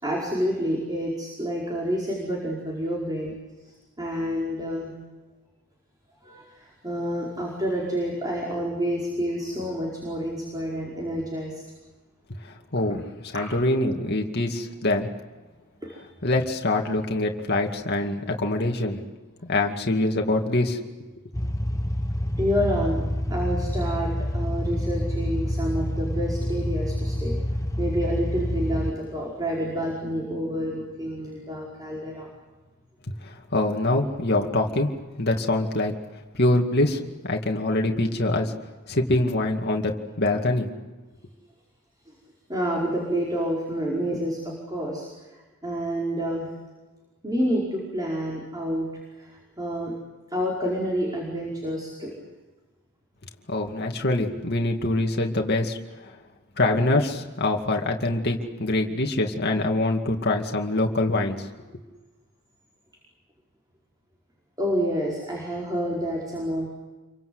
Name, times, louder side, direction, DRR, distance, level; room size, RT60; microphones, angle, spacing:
voice 1, 0.0-3.3 3.6-5.0 6.2-11.6 13.3-13.5 15.8-16.0 22.4-23.0 23.3-27.4 27.8-32.3 42.1-42.2 42.5-45.1 45.6-46.5 47.2-48.9 49.1-49.9 50.3-52.1 64.6-66.7, equal, 20° right, -3 dB, 5.1 m, -28 dB
voice 2, 12.7-15.1 16.2-19.0 19.4-20.8 33.1-34.9 35.2-35.9 36.3-38.5 38.9-40.7 53.5-56.1 56.6-61.5, left 2 dB, 50° left, 2 dB, 2.4 m, -24 dB
sound 1, 21.3-28.9, equal, 15° left, 1.1 m, -27 dB
29.0 x 24.0 x 8.0 m, 1.2 s
head